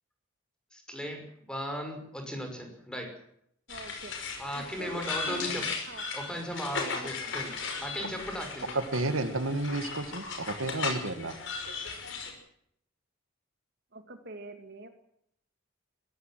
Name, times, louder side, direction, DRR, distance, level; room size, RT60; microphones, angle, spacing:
voice 1, 0.7-1.2 1.5-3.1 4.4-5.6 6.1-7.5 7.8-8.7, equal, 5° left, 4 dB, 5.8 m, -36 dB
sound 1, 3.7-12.3, left 4 dB, 65° left, 6.0 m, -37 dB
voice 2, 3.7-4.2 4.5-6.1 6.9-7.1 13.9-14.9, right 2 dB, 55° right, 7 dB, 2.3 m, -44 dB
voice 3, 8.7-11.4, right 2 dB, 80° right, 9 dB, 2.0 m, -31 dB
23.0 x 16.5 x 7.6 m, 0.71 s
head